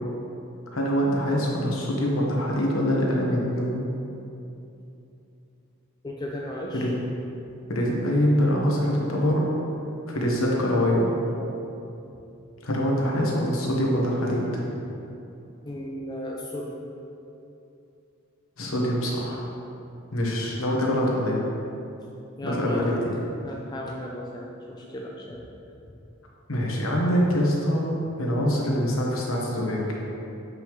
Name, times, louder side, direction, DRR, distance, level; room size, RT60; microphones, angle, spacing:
voice 1, 0.7-3.8 6.7-6.9 7.7-9.5 10.1-11.1 12.6-14.6 18.6-19.4 20.1-21.4 22.4-22.9 26.5-27.9 28.2-29.8, equal, 80° left, -2 dB, 1.2 m, -24 dB
voice 2, 6.0-6.9 11.4-11.6 15.6-16.9 22.4-23.1 23.4-25.5, left 1 dB, 20° left, -2 dB, 0.4 m, -35 dB
7.7 x 5.3 x 3.1 m, 2.8 s
head